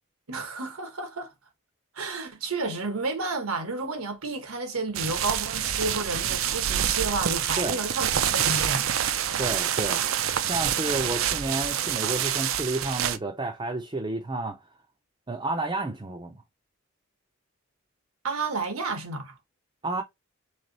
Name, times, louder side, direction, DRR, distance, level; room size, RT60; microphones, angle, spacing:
voice 1, 0.3-1.3 1.9-9.0 18.2-19.3, right 3 dB, 85° right, 1.2 m, -31 dB
sound 1, 4.9-13.2, right 10 dB, 70° right, 0.5 m, -27 dB
voice 2, 9.4-10.0 10.5-14.6 15.3-16.4 19.8-20.0, right 2 dB, 20° right, 0.5 m, -31 dB
3.5 x 3.3 x 3.9 m
head